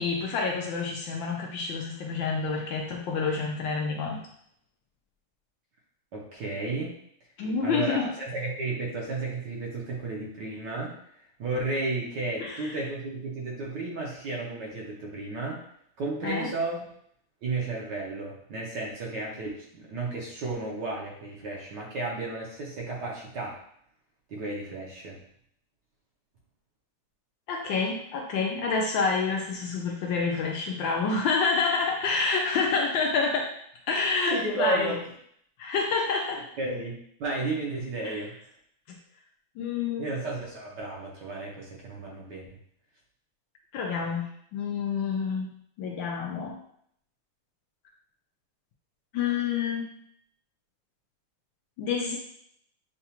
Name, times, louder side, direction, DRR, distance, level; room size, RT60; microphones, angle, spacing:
voice 1, 0.0-4.2 7.4-8.1 12.4-12.7 16.2-16.5 27.5-33.5 33.9-34.9 35.6-36.4 38.0-38.2 39.6-40.0 43.7-44.2 44.5-45.5 45.8-46.6 49.1-49.9 51.8-52.2, left 4 dB, 75° left, 0 dB, 1.2 m, -28 dB
voice 2, 6.1-7.0 7.6-10.9 11.4-15.6 16.0-16.9 17.4-23.6 24.3-25.2 34.3-35.0 36.6-38.3 40.0-42.5, right 2 dB, 60° right, -3 dB, 1.3 m, -33 dB
6.8 x 2.3 x 2.9 m, 0.68 s
omnidirectional pair, 2.4 m